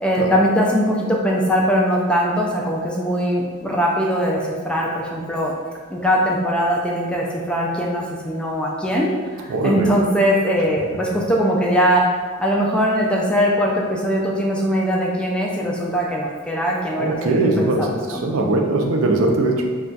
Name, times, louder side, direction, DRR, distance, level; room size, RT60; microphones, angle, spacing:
voice 1, 0.0-5.5 5.9-9.1 9.4-12.0 12.4-18.3, equal, 5° left, -3 dB, 0.3 m, -21 dB
voice 2, 9.5-9.9 17.0-19.7, right 2 dB, 70° right, 1 dB, 0.4 m, -20 dB
2.3 x 2.2 x 3.9 m, 1.5 s
head